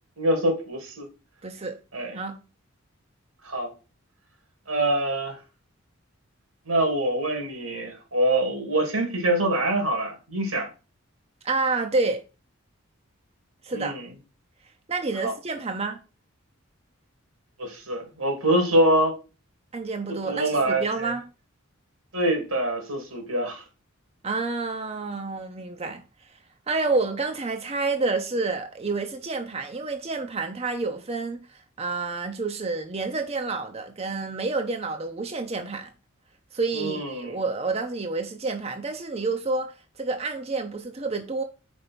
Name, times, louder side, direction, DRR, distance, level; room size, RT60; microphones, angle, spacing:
voice 1, 0.2-1.1 1.9-2.2 3.4-3.7 4.7-5.4 6.7-10.7 13.7-14.1 15.2-15.3 17.6-19.1 20.1-21.1 22.1-23.6 36.7-37.4, right 1 dB, 90° right, 2.7 m, -25 dB
voice 2, 1.4-1.8 2.1-2.4 11.4-12.2 13.6-13.9 14.9-16.0 19.7-21.2 24.2-26.0 26.7-31.4 31.8-35.9 36.5-41.4, right 3 dB, 30° right, 0.6 m, -29 dB
5.2 x 4.7 x 6.0 m
head